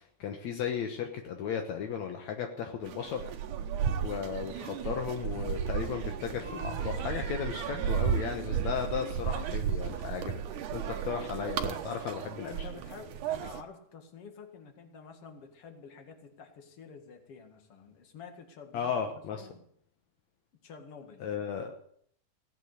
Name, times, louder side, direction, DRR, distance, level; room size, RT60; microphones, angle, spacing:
voice 1, 0.0-3.3 4.0-10.4 10.7-12.7 18.7-19.5 21.2-21.7, left 7 dB, 75° left, 4 dB, 1.6 m, -35 dB
sound 1, 2.8-13.6, right 8 dB, 70° right, 2.0 m, -34 dB
voice 2, 12.4-19.6 20.6-21.3, left 5 dB, 45° left, 6 dB, 2.1 m, -49 dB
17.0 x 9.1 x 8.2 m, 0.65 s
omnidirectional pair, 4.9 m